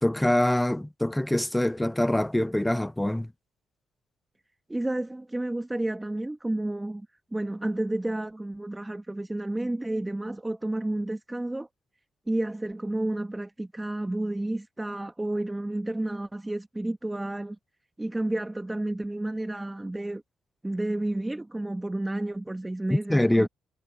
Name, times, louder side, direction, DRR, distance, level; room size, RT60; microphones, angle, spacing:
voice 1, 0.0-3.3 22.9-23.5, left 1 dB, 5° left, 0.5 m, -24 dB
voice 2, 4.7-7.1 7.3-11.7 12.3-17.6 18.0-20.2 20.6-23.5, right 1 dB, 10° right, 1.9 m, -31 dB
cardioid pair, 90°, 0 cm